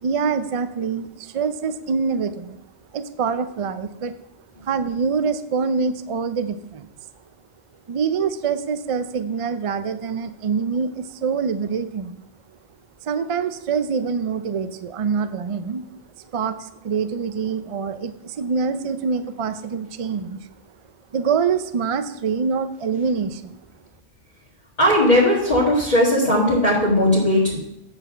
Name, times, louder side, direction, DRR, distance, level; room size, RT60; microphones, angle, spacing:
voice 1, 0.0-2.6 2.9-4.2 4.6-6.9 7.9-12.2 13.0-15.8 16.2-20.5 21.1-23.6, right 5 dB, 60° right, 10 dB, 0.3 m, -25 dB
voice 2, 24.8-27.6, left 1 dB, 30° left, -9 dB, 2.0 m, -17 dB
8.6 x 4.1 x 6.8 m, 0.82 s
omnidirectional pair, 1.2 m